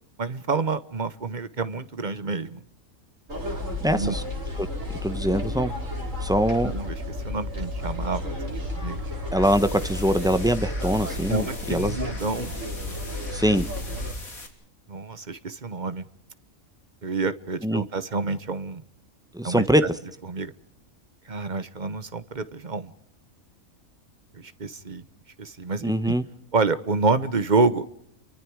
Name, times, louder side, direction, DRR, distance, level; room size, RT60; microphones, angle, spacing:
voice 1, 0.2-2.6 3.9-4.2 6.6-8.3 8.7-9.0 11.3-12.5 14.9-16.0 17.0-18.8 19.4-19.7 20.3-20.5 21.3-22.9 24.3-25.0 25.4-26.1 26.5-27.9, right 3 dB, 35° right, 1.1 m, -28 dB
sound 1, 3.3-14.1, left 1 dB, 65° right, 5.9 m, -32 dB
voice 2, 3.8-4.2 4.6-4.7 5.0-5.7 6.2-6.7 9.3-12.0 13.3-13.7 17.6-17.8 19.3-19.8 25.8-26.2, equal, 5° right, 1.0 m, -23 dB
sound 2, 9.3-14.5, left 3 dB, 80° left, 3.7 m, -42 dB
30.0 x 24.0 x 4.8 m
omnidirectional pair, 1.5 m